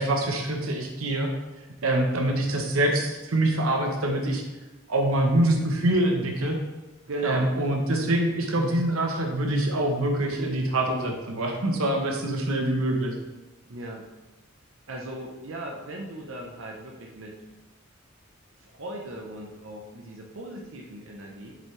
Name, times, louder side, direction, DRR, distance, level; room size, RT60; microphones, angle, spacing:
voice 1, 0.0-1.3 1.8-4.4 4.9-6.6 7.2-13.1, right 1 dB, 90° right, 3 dB, 1.0 m, -25 dB
voice 2, 7.1-7.5 13.7-14.1 14.9-17.4 18.6-21.6, right 1 dB, 65° right, 0 dB, 0.8 m, -37 dB
7.2 x 5.5 x 3.2 m, 1.1 s
head